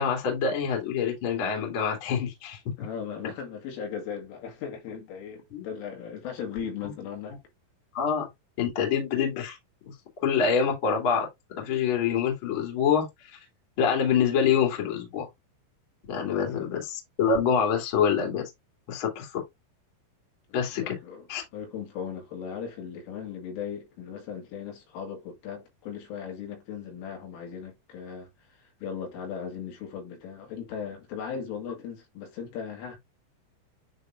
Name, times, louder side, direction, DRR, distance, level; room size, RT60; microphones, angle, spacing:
voice 1, 0.0-2.6 5.5-5.7 6.8-6.9 7.9-8.3 8.6-9.6 9.8-9.9 10.2-11.3 11.6-13.1 13.8-15.3 16.1-18.4 18.9-19.4 20.5-21.0 21.3-21.4, left 6 dB, 35° left, 2.2 m, -26 dB
voice 2, 2.8-7.4 16.3-16.5 20.5-21.2 21.5-33.0, left 7 dB, 75° left, 4.6 m, -38 dB
10.0 x 3.8 x 2.6 m
omnidirectional pair, 5.8 m